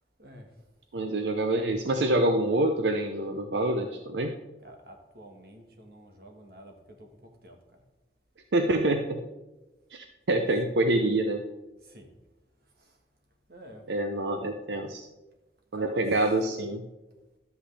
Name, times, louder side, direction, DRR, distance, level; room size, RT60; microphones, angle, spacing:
voice 1, 0.9-4.4 8.5-9.2 9.9-11.4 13.9-15.1 15.7-16.8, right 1 dB, 85° right, 5 dB, 0.6 m, -26 dB
voice 2, 4.6-7.8 10.3-10.4 10.8-10.9 11.8-12.1 12.7-13.0 13.5-13.8 15.7-16.1, equal, 60° right, 3 dB, 1.5 m, -49 dB
12.0 x 7.9 x 3.3 m, 1.1 s
head